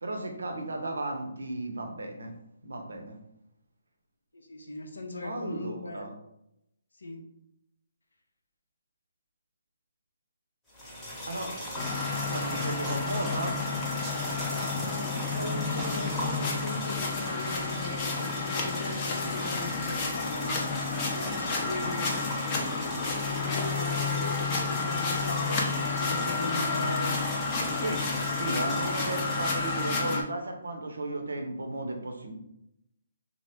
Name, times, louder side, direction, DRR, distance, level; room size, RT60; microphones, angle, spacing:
voice 1, 0.0-2.3 2.6-3.2 5.2-6.1 11.3-11.5 11.9-13.6 27.8-28.0 28.3-32.3, right 2 dB, 80° right, 4 dB, 0.6 m, -35 dB
voice 2, 4.3-6.0 7.0-7.2 14.5-20.6 21.0-22.2 23.2-27.8, left 2 dB, 85° left, 3 dB, 0.5 m, -38 dB
sound 1, 10.7-30.0, equal, 10° left, 0.9 m, -39 dB
sound 2, 11.7-30.2, left 4 dB, 30° left, 0.5 m, -31 dB
sound 3, 11.8-13.7 14.0-15.2 15.8-16.6, right 2 dB, 15° right, 0.6 m, -42 dB
2.9 x 2.0 x 3.4 m, 0.82 s
figure-of-eight pair, 140°, 0 cm